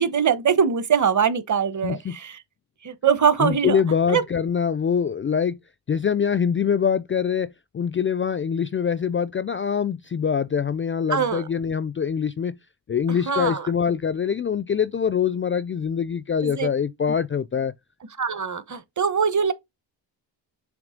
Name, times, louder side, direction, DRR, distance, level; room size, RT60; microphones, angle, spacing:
voice 1, 0.0-2.4 2.8-3.8 4.1-4.2 11.1-11.4 13.3-13.7 16.4-16.7 18.2-19.5, right 7 dB, 40° right, 1.1 m, -22 dB
voice 2, 1.8-2.2 3.4-5.6 5.9-12.6 12.9-17.7, left 7 dB, 30° left, 0.4 m, -24 dB
7.1 x 3.0 x 5.1 m
cardioid pair, 90°, 44 cm